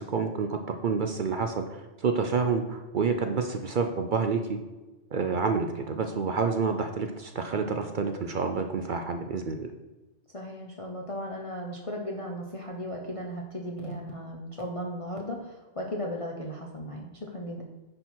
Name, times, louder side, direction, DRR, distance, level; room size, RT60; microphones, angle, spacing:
voice 1, 0.0-4.6 5.1-9.7, right 5 dB, 50° right, 6 dB, 0.7 m, -28 dB
voice 2, 10.3-17.6, equal, 30° left, -1 dB, 0.8 m, -36 dB
9.8 x 4.4 x 4.4 m, 1.2 s
omnidirectional pair, 1.2 m